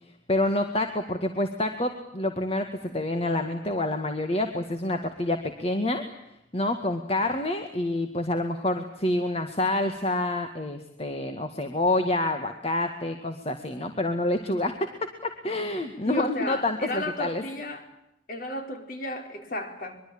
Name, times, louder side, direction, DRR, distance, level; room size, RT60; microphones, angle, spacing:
voice 1, 0.3-6.0 6.5-14.7 15.2-17.4, left 1 dB, 35° left, 6 dB, 2.0 m, -27 dB
voice 2, 16.0-17.9 18.3-20.0, left 1 dB, 50° left, 5 dB, 4.8 m, -34 dB
24.5 x 23.0 x 8.8 m, 0.81 s
head